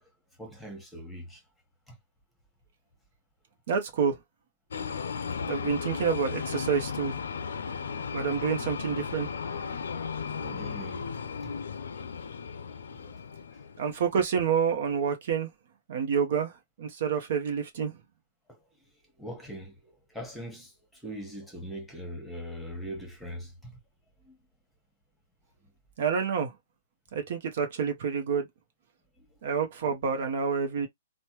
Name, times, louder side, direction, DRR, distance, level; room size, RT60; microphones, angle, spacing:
voice 1, 0.4-1.4 10.4-11.0 12.9-13.1 19.2-19.7 20.1-20.7 21.0-23.5, equal, ahead, 1.2 m, -40 dB
voice 2, 3.7-4.2 5.5-7.2 8.1-9.3 13.8-15.5 15.9-17.9 26.0-26.5 27.1-28.5 29.4-30.9, right 6 dB, 60° right, 0.8 m, -28 dB
sound 1, 4.7-14.0, left 6 dB, 85° left, 0.5 m, -35 dB
3.2 x 2.1 x 2.9 m
hypercardioid pair, 145°, 0 cm